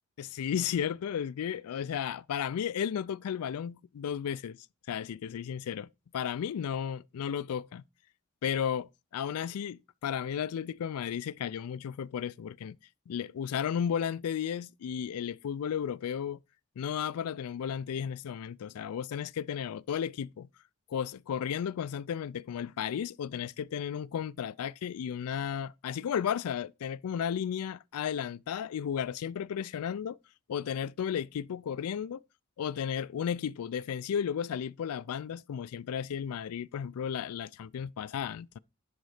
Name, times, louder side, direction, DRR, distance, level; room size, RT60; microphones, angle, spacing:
voice 1, 0.2-4.6 4.9-7.8 8.4-12.8 13.1-16.4 16.8-20.5 20.9-30.2 30.5-32.2 32.6-38.6, left 8 dB, 80° left, 0.3 m, -34 dB
10.5 x 3.9 x 4.9 m
head